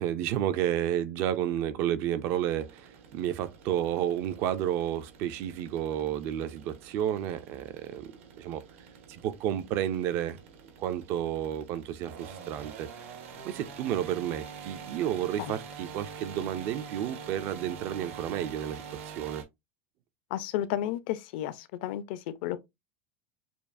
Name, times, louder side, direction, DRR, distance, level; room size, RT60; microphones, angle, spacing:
voice 1, 0.0-8.6 9.1-10.4 10.8-13.1 13.4-19.4, right 11 dB, 35° right, 0.4 m, -31 dB
sound 1, 2.3-19.4, right 6 dB, 85° right, 1.3 m, -46 dB
voice 2, 20.3-22.6, left 12 dB, 50° left, 0.5 m, -32 dB
6.8 x 2.4 x 2.5 m
supercardioid pair, 180°, 7 cm